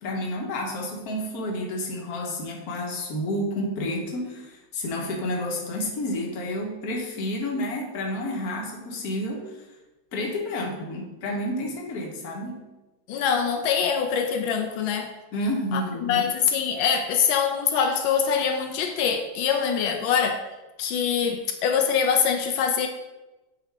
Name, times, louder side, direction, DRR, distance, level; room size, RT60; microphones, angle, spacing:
voice 1, 0.0-9.5 10.1-12.6 15.3-16.3, left 1 dB, 55° left, 0 dB, 1.5 m, -30 dB
voice 2, 13.1-15.1 15.7-20.4 20.8-22.9, left 7 dB, 85° left, 4 dB, 1.4 m, -24 dB
7.7 x 4.9 x 3.4 m, 1.1 s
omnidirectional pair, 2.1 m